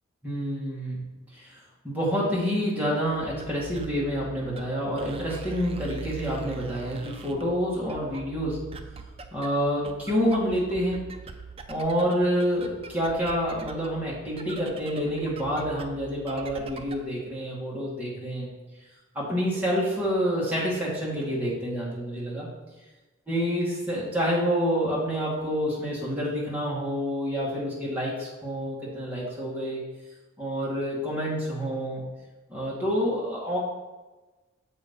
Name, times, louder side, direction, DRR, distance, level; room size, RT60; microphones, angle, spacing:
voice 1, 0.2-1.0 1.3-1.6 1.8-8.6 9.3-11.1 11.7-18.5 19.1-22.5 23.3-29.8 30.4-32.0 32.5-33.6, equal, 5° right, -7 dB, 2.0 m, -28 dB
sound 1, 3.0-17.1, right 4 dB, 30° right, 0.4 m, -42 dB
7.1 x 4.1 x 5.4 m, 1.2 s
head